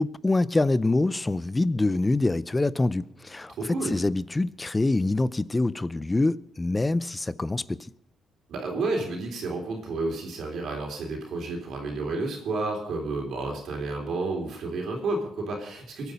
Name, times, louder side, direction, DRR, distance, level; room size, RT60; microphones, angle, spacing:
voice 1, 0.0-7.9, left 2 dB, 15° left, 0.5 m, -25 dB
voice 2, 3.5-3.9 8.5-16.1, right 3 dB, 65° right, 3.8 m, -31 dB
23.0 x 9.2 x 5.3 m
cardioid pair, 115°, 0 cm